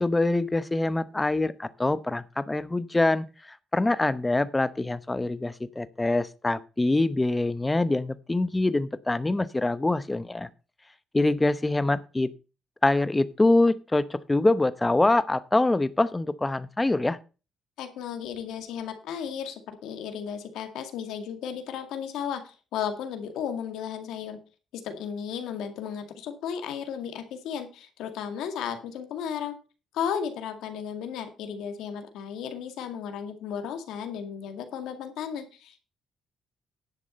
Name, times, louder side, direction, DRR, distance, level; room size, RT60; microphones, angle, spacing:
voice 1, 0.0-10.5 11.1-12.3 12.8-17.2, left 2 dB, 15° left, 15 dB, 0.9 m, -25 dB
voice 2, 17.8-24.4 24.7-29.5 29.9-35.8, left 8 dB, 85° left, 7 dB, 2.0 m, -34 dB
11.0 x 7.2 x 5.3 m, 0.33 s
cardioid pair, 90°, 0 cm